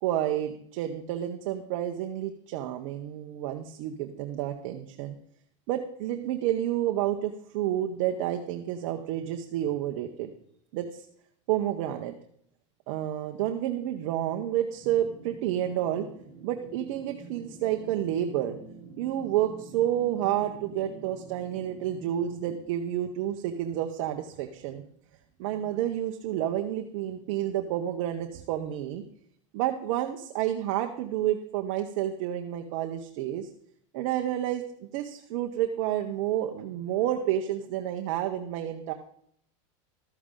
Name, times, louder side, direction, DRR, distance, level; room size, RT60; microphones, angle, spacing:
voice 1, 0.0-5.1 5.7-10.3 10.7-11.1 11.5-12.1 12.9-16.1 16.4-18.6 19.0-24.8 25.4-29.0 29.5-33.5 33.9-34.6 34.9-38.9, right 12 dB, 55° right, 4 dB, 0.9 m, -30 dB
sound 1, 14.8-22.6, right 3 dB, 5° left, 3.9 m, -47 dB
12.5 x 9.3 x 3.8 m, 0.66 s
supercardioid pair, 145°, 17 cm